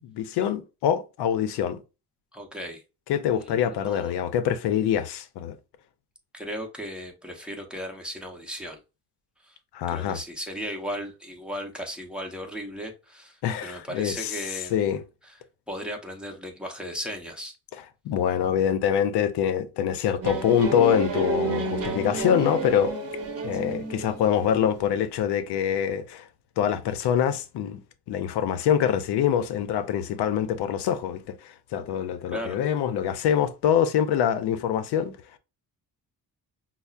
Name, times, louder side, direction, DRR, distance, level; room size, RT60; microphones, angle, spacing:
voice 1, 0.2-1.8 3.1-5.6 9.7-10.2 13.4-14.5 14.7-15.0 18.0-23.0 23.4-26.3 26.6-27.8 28.1-35.1, left 9 dB, 90° left, 0.6 m, -25 dB
voice 2, 2.3-2.8 3.4-4.1 6.3-8.8 9.4-9.6 9.9-14.8 15.3-15.4 15.7-17.5 32.3-32.6, equal, ahead, 0.8 m, -36 dB
sound 1, 20.2-24.9, right 3 dB, 40° right, 0.8 m, -31 dB
5.4 x 2.0 x 2.3 m
cardioid pair, 120°, 39 cm